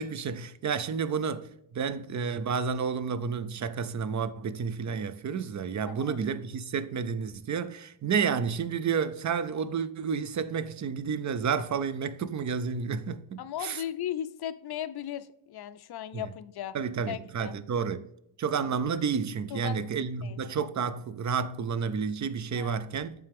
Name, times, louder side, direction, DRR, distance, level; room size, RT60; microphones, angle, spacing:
voice 1, 0.0-1.4 1.7-13.8 16.1-16.2 16.7-18.1 18.4-23.1, right 6 dB, 40° right, 0.4 m, -30 dB
voice 2, 5.9-6.2 13.4-16.8 17.1-17.5 19.5-19.9 20.2-20.4 22.6-22.8, left 11 dB, 50° left, 0.5 m, -37 dB
8.8 x 3.4 x 3.4 m
wide cardioid pair, 115°, 50 cm